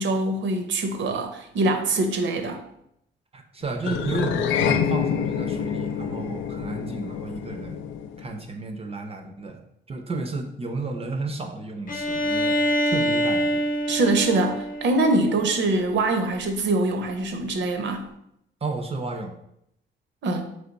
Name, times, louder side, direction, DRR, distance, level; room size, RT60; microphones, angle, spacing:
voice 1, 0.0-2.6 13.9-18.1 20.2-20.5, right 2 dB, 70° right, 6 dB, 0.7 m, -24 dB
voice 2, 3.3-7.8 8.2-9.6 9.9-13.6 18.6-19.3, right 3 dB, 30° right, 4 dB, 0.5 m, -32 dB
sound 1, 3.8-8.4, left 8 dB, 80° left, 0.4 m, -27 dB
Bowed string instrument, 11.9-15.6, equal, 45° left, 0.8 m, -25 dB
3.4 x 3.3 x 3.9 m, 0.76 s
cardioid pair, 90°, 20 cm